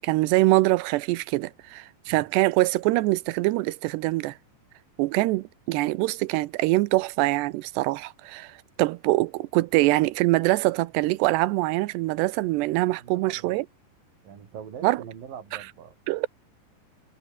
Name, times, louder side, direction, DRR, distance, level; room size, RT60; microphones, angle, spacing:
voice 1, 0.0-4.3 5.0-13.7 14.8-15.0 16.1-16.3, right 20 dB, 80° right, 2.8 m, -24 dB
voice 2, 13.0-13.6 14.2-16.0, right 8 dB, 55° right, 4.5 m, -42 dB
omnidirectional pair, 5.1 m